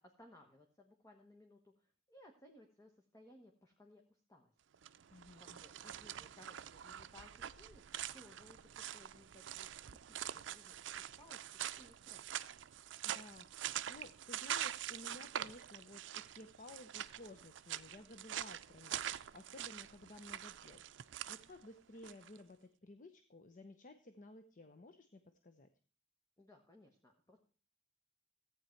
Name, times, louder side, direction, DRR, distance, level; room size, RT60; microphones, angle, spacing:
voice 1, 0.0-4.5 5.4-12.2 26.4-27.4, left 1 dB, 20° left, 2 dB, 1.3 m, -62 dB
sound 1, 4.7-22.4, right 11 dB, 75° right, 0.5 m, -45 dB
voice 2, 5.1-5.6 13.0-25.7, left 2 dB, 45° left, 9 dB, 0.8 m, -56 dB
14.5 x 9.0 x 4.5 m, 0.41 s
head